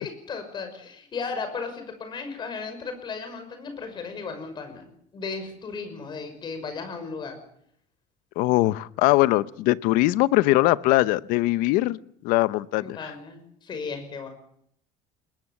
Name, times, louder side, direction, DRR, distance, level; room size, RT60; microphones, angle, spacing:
voice 1, 0.0-4.9 5.1-7.4 12.8-14.3, left 4 dB, 30° left, 8 dB, 5.8 m, -35 dB
voice 2, 8.4-12.0 12.2-13.0, left 18 dB, 75° left, 17 dB, 0.8 m, -21 dB
23.0 x 20.5 x 7.4 m, 0.69 s
cardioid pair, 155°, 14 cm